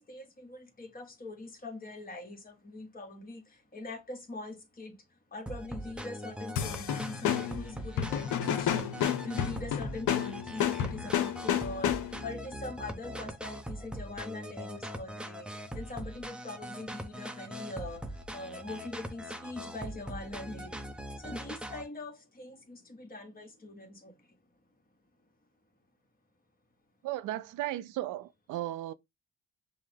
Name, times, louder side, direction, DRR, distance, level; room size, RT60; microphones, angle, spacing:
voice 1, 0.0-5.0 5.3-24.4, left 2 dB, 30° left, 1.3 m, -43 dB
sound 1, 5.5-21.9, equal, 5° right, 0.7 m, -41 dB
sound 2, 6.5-12.3, left 9 dB, 80° left, 0.7 m, -31 dB
voice 2, 27.0-28.9, right 14 dB, 90° right, 0.5 m, -35 dB
5.5 x 2.1 x 3.2 m
cardioid pair, 90°, 30 cm